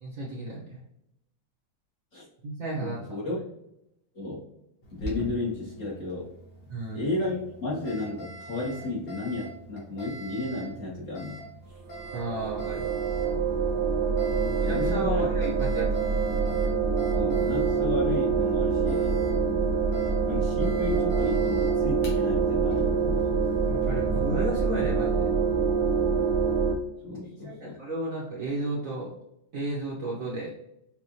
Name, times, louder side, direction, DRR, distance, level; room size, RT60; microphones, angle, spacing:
voice 1, 0.0-0.8 2.4-3.0 6.7-7.0 12.1-13.0 14.6-15.9 23.7-25.3 27.4-29.1 29.5-30.5, right 2 dB, 50° right, -5 dB, 1.2 m, -33 dB
voice 2, 2.8-3.4 4.1-4.5 4.9-6.3 6.9-11.4 14.3-15.3 17.1-19.2 20.2-23.3 27.0-27.7, left 2 dB, 40° left, -6 dB, 1.4 m, -33 dB
Alarm, 4.8-24.2, right 1 dB, 75° left, 2.3 m, -44 dB
sound 1, 11.9-26.8, right 5 dB, 70° right, 1.0 m, -25 dB
6.1 x 2.6 x 2.8 m, 0.80 s
omnidirectional pair, 2.3 m